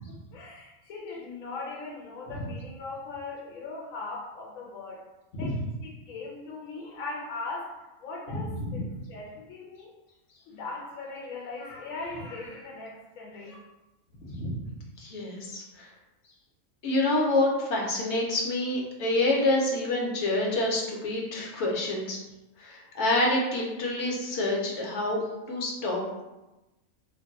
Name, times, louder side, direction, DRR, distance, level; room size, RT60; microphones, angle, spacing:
voice 1, 0.1-5.1 5.4-9.9 10.5-13.5, left 3 dB, 90° left, -2 dB, 1.0 m, -39 dB
voice 2, 8.3-8.8 14.2-14.6 15.0-15.9 16.8-22.2 22.6-25.2 25.5-26.2, left 2 dB, 60° left, -2 dB, 0.9 m, -27 dB
2.5 x 2.2 x 3.8 m, 1.0 s
omnidirectional pair, 1.4 m